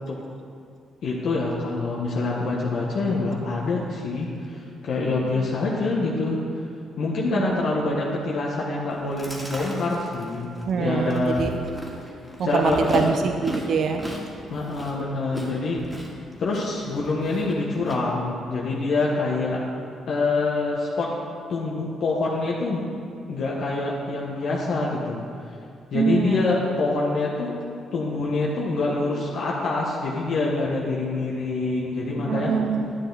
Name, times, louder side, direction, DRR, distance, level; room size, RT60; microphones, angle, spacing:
voice 1, 1.0-6.4 7.0-10.5 10.8-11.5 12.4-13.1 14.5-15.8 16.4-19.6 20.1-21.1 21.5-22.8 23.3-25.2 25.9-27.5 27.9-32.5, left 3 dB, 65° left, -4 dB, 1.4 m, -25 dB
voice 2, 7.3-7.6 10.7-11.5 12.4-14.0 25.9-26.6 32.2-33.0, right 5 dB, 60° right, 6 dB, 0.5 m, -24 dB
Chewing mastication, 8.9-18.0, equal, 15° right, 2.1 m, -37 dB
11.0 x 9.2 x 4.1 m, 2.4 s
cardioid pair, 90°, 0 cm